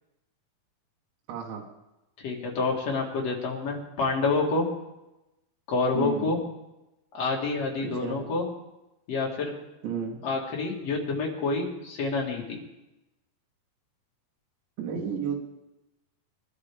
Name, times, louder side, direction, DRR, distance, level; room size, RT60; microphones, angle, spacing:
voice 1, 1.3-1.6 5.9-6.4 7.8-8.2 9.8-10.2 14.8-15.4, right 7 dB, 80° right, 0 dB, 3.8 m, -32 dB
voice 2, 2.2-4.7 5.7-6.4 7.1-8.4 9.1-9.5 10.2-12.6, left 3 dB, 50° left, -1 dB, 2.1 m, -28 dB
21.5 x 11.5 x 3.5 m, 0.96 s
omnidirectional pair, 5.3 m